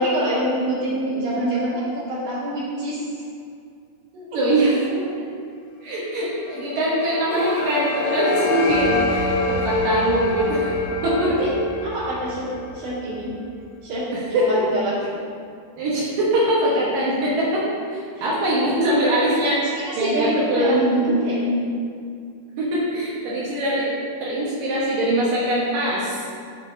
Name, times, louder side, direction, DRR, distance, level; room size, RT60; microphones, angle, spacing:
voice 1, 0.0-3.1 11.3-11.5 11.8-13.3 13.8-14.9 18.2-18.3 19.4-21.7, right 1 dB, 50° right, -13 dB, 2.7 m, -25 dB
voice 2, 4.1-4.8 5.8-10.7 11.0-11.3 14.3-14.6 15.8-19.6 20.0-20.8 21.1-21.2 22.6-26.2, right 1 dB, 75° right, -6 dB, 2.0 m, -22 dB
sound 1, 6.4-13.5, left 2 dB, 90° left, 2.3 m, -26 dB
sound 2, 7.3-8.8, equal, 50° left, 1.1 m, -33 dB
13.0 x 6.7 x 2.7 m, 2.3 s
omnidirectional pair, 5.8 m